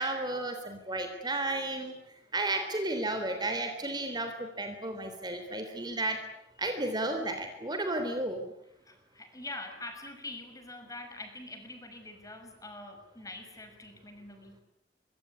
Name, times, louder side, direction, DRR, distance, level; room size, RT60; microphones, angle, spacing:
voice 1, 0.0-1.9 2.3-6.2 6.6-8.5, right 2 dB, 20° right, 6 dB, 3.5 m, -33 dB
voice 2, 8.8-14.6, left 2 dB, 20° left, 6 dB, 5.9 m, -44 dB
25.0 x 24.0 x 9.7 m, 0.82 s
head